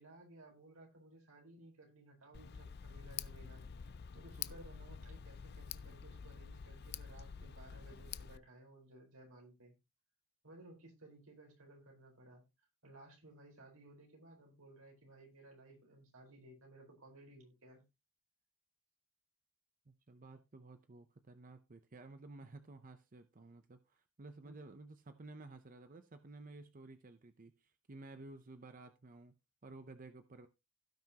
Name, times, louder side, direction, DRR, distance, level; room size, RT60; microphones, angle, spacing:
voice 1, 0.0-9.7 10.4-12.4 12.8-17.8 24.4-24.7, right 1 dB, 85° right, 4.5 m, -58 dB
Tick, 2.3-8.4, left 8 dB, 50° left, 0.4 m, -48 dB
voice 2, 19.9-29.3 29.6-30.5, right 2 dB, 40° right, 0.7 m, -54 dB
16.5 x 5.9 x 2.9 m
head